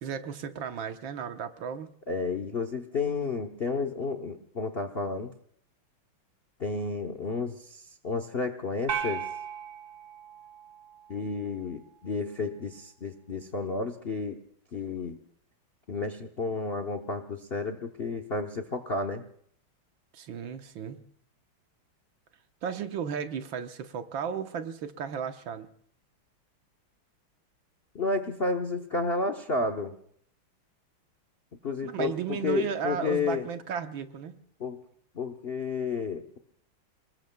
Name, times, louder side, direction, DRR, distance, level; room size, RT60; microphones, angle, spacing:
voice 1, 0.0-1.9 20.1-21.0 22.6-25.7 31.8-34.4, right 7 dB, 70° right, 8 dB, 1.7 m, -34 dB
voice 2, 2.1-5.3 6.6-9.2 11.1-14.4 14.7-15.2 15.9-19.2 27.9-29.9 31.6-33.5 34.6-34.8 35.1-36.4, left 3 dB, 50° left, 7 dB, 0.7 m, -31 dB
sound 1, 8.9-11.4, right 8 dB, 40° right, 2.1 m, -36 dB
29.5 x 20.5 x 2.3 m, 0.62 s
omnidirectional pair, 2.3 m